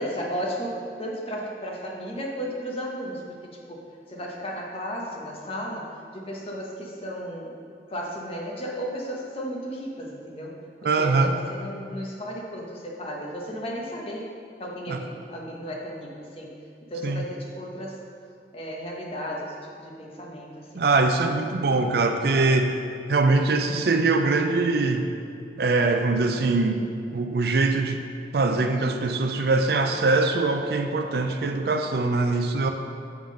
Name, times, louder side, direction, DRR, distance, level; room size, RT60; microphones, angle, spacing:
voice 1, 0.0-7.5 7.9-14.3 14.6-16.5 16.8-18.0 18.5-20.8, equal, 30° left, -2 dB, 1.0 m, -34 dB
voice 2, 10.8-11.3 14.9-15.0 17.0-17.3 20.7-22.7 23.1-25.1 25.6-26.8 27.1-28.0 28.3-32.7, right 3 dB, 60° right, 5 dB, 0.5 m, -22 dB
7.2 x 3.7 x 6.2 m, 2.4 s
head